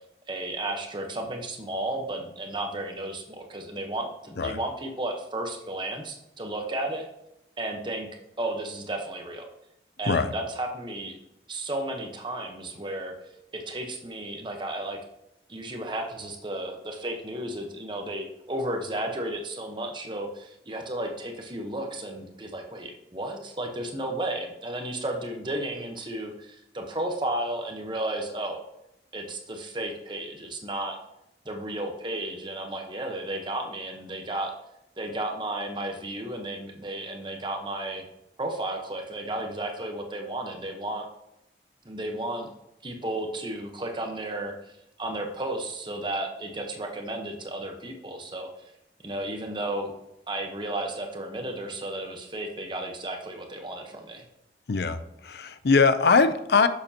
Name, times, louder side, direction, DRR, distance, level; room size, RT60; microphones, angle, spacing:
voice 1, 0.3-7.1 7.6-8.1 8.4-9.5 10.0-11.1 11.5-13.1 13.5-15.0 15.5-28.6 29.1-31.0 31.4-34.5 35.0-38.0 38.4-41.1 41.8-42.5 42.8-44.6 45.0-48.5 49.0-49.9 50.3-54.2, right 1 dB, 25° right, 3 dB, 1.0 m, -33 dB
voice 2, 54.7-56.7, left 4 dB, 65° left, 12 dB, 0.5 m, -22 dB
10.0 x 7.0 x 2.9 m, 0.85 s
head